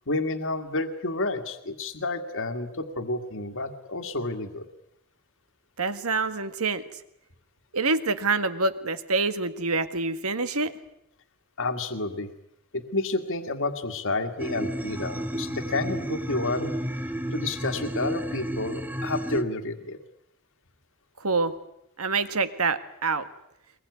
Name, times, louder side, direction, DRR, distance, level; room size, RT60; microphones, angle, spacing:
voice 1, 0.1-4.7 11.6-12.3 12.7-16.7 17.3-20.0, left 2 dB, 60° left, 7 dB, 1.9 m, -30 dB
voice 2, 5.8-6.8 7.7-10.7 21.2-21.5 22.0-23.2, right 3 dB, 75° right, 11 dB, 1.7 m, -26 dB
sound 1, 14.4-19.4, right 1 dB, 10° right, 1.0 m, -32 dB
22.5 x 21.0 x 9.6 m, 0.79 s
head